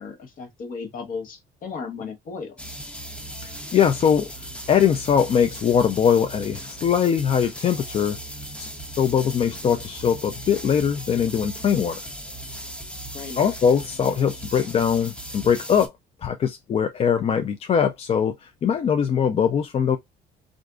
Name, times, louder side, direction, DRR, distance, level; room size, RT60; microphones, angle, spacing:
voice 1, 0.0-2.9 13.1-13.4, left 5 dB, 55° left, 1.1 m, -35 dB
sound 1, 2.6-15.9, right 1 dB, 5° left, 0.7 m, -37 dB
voice 2, 3.4-4.3 4.7-8.2 8.6-8.7 9.0-12.0 13.4-15.9 16.2-20.0, left 7 dB, 35° left, 0.4 m, -21 dB
3.5 x 2.5 x 2.3 m
cardioid pair, 110°, 17 cm